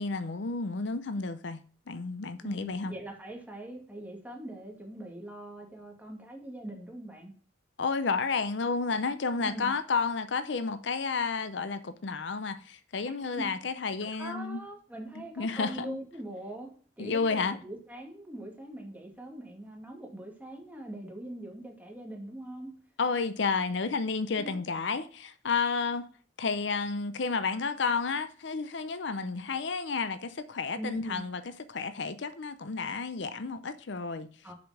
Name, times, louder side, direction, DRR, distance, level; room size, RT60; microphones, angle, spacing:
voice 1, 0.0-1.6 1.9-2.9 7.8-14.6 15.2-16.0 17.0-17.6 23.0-26.1 26.4-31.4 31.7-34.3, left 4 dB, 70° left, 0.6 m, -31 dB
voice 2, 2.4-7.3 9.4-9.7 13.4-13.5 14.2-16.7 17.0-22.7 24.4-24.6 30.7-31.3 34.4-34.5, right 1 dB, 10° right, 2.2 m, -42 dB
6.8 x 5.1 x 6.1 m
head